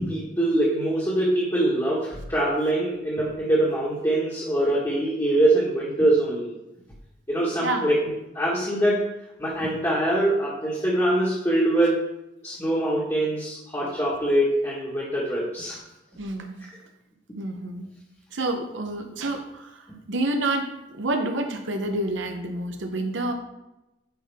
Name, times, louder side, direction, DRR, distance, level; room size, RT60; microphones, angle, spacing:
voice 1, 0.0-6.6 7.3-9.0 9.4-12.0 12.4-15.8 19.9-20.0, right 1 dB, 15° left, -7 dB, 1.5 m, -23 dB
voice 2, 16.2-16.6 17.4-17.9 18.3-19.7 20.1-20.7 21.0-23.3, right 2 dB, 85° right, 5 dB, 0.8 m, -28 dB
9.4 x 4.7 x 3.5 m, 0.92 s
head